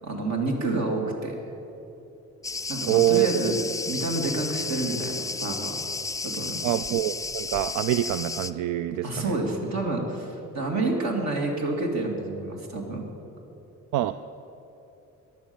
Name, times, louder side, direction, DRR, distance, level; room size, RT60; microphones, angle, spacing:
voice 1, 0.0-1.3 2.7-3.6 3.9-5.7 6.2-6.6 9.0-13.0, right 2 dB, 65° right, 1 dB, 2.5 m, -29 dB
Cricket, 2.4-8.5, left 3 dB, 10° left, 0.3 m, -32 dB
voice 2, 2.9-3.5 6.6-9.4 13.9-14.2, right 13 dB, 85° right, 12 dB, 0.5 m, -25 dB
13.5 x 10.5 x 7.0 m, 3.0 s
cardioid pair, 90°, 30 cm